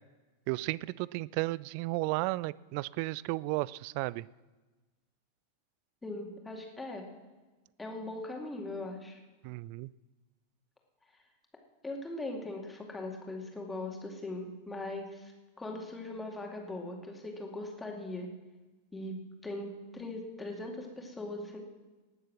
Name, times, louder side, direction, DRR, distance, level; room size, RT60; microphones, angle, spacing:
voice 1, 0.5-4.3 9.4-9.9, right 21 dB, 45° right, 21 dB, 0.3 m, -33 dB
voice 2, 6.0-7.0 7.8-9.2 11.8-15.3 15.6-18.3 18.9-21.6, left 2 dB, 10° left, 1 dB, 2.3 m, -40 dB
19.0 x 7.4 x 6.1 m, 1.2 s
figure-of-eight pair, 90°, 0 cm